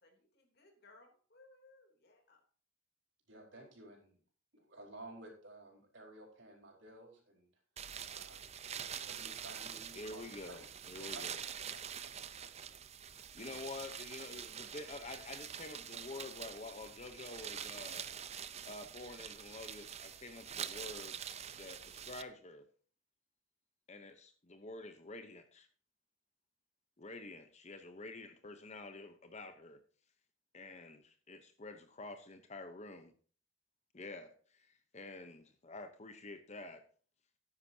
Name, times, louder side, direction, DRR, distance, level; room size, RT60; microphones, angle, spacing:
voice 1, 0.0-2.4, left 2 dB, 50° left, 3 dB, 3.2 m, -63 dB
voice 2, 3.3-4.2 4.5-7.5 8.1-8.5 9.0-10.7 11.0-12.8, right 1 dB, 60° right, 1 dB, 4.5 m, -54 dB
sound 1, 7.8-22.2, right 8 dB, 30° right, 0.6 m, -46 dB
voice 3, 10.0-11.4 13.3-18.1 18.6-21.2 21.6-22.6 23.9-25.7 27.0-29.8 30.5-33.1 33.9-36.8, left 2 dB, 35° left, 8 dB, 0.9 m, -48 dB
14.0 x 9.9 x 2.8 m, 0.43 s
head